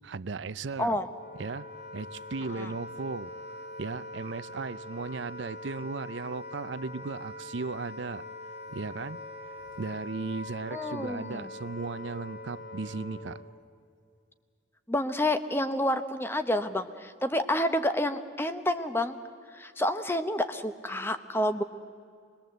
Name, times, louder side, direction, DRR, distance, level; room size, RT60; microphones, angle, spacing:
voice 1, 0.0-1.0 1.3-1.7 1.9-3.3 3.8-8.2 8.7-9.2 9.8-13.4, right 4 dB, 70° right, 16 dB, 0.6 m, -36 dB
Wind instrument woodwind instrument, 0.9-13.6, left 2 dB, 50° left, 2.4 m, -43 dB
voice 2, 10.7-11.5 14.9-19.2 19.5-21.6, left 1 dB, 10° left, 10 dB, 0.9 m, -29 dB
25.0 x 20.5 x 7.9 m, 2.3 s
head